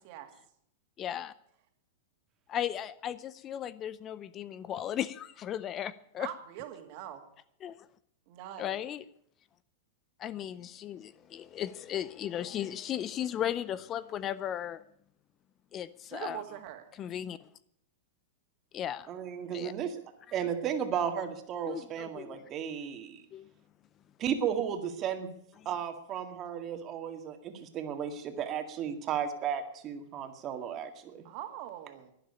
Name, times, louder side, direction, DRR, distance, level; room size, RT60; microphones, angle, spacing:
voice 1, 1.0-1.3 2.5-6.3 7.6-7.7 8.6-9.0 10.2-14.8 15.7-16.4 17.0-17.4 18.7-19.1 19.5-19.7 21.7-21.8 22.1-22.4 23.3-23.4, left 10 dB, 30° left, 17 dB, 0.5 m, -36 dB
voice 2, 6.2-7.2 8.3-8.8 16.1-16.9 31.2-32.1, right 12 dB, 50° right, 6 dB, 2.3 m, -42 dB
voice 3, 19.1-20.0 20.3-23.2 24.2-25.3 25.7-31.2, right 8 dB, 35° right, 7 dB, 2.0 m, -34 dB
11.5 x 10.5 x 8.6 m, 0.72 s
hypercardioid pair, 125°, 0 cm